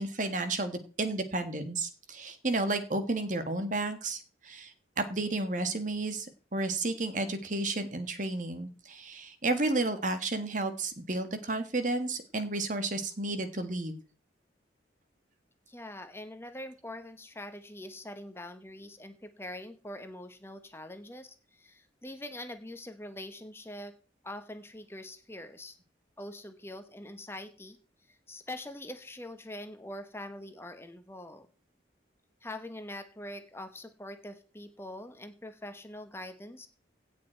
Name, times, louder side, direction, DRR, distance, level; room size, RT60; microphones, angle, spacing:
voice 1, 0.0-14.0, right 2 dB, 45° right, 8 dB, 1.6 m, -32 dB
voice 2, 15.7-23.9 24.2-25.8 26.2-27.8 28.1-31.5 32.4-36.7, left 1 dB, 15° left, 8 dB, 1.0 m, -44 dB
17.0 x 7.5 x 4.5 m, 0.38 s
head